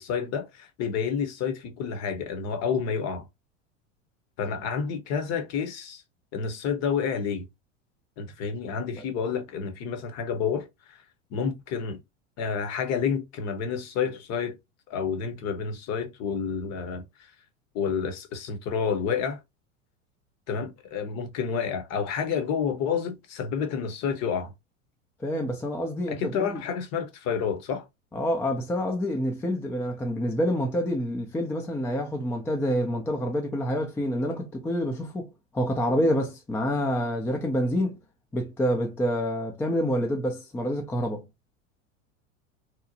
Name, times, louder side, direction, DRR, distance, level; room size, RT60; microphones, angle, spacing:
voice 1, 0.0-3.3 4.4-6.0 6.3-7.5 8.2-11.0 11.3-12.0 12.4-14.5 14.9-17.0 17.7-19.4 20.5-24.5 26.1-27.9, left 6 dB, 45° left, 0.8 m, -29 dB
voice 2, 25.2-26.6 28.1-38.0 38.3-41.2, equal, 5° left, 0.3 m, -27 dB
2.9 x 2.1 x 2.6 m
hypercardioid pair, 90°, 38 cm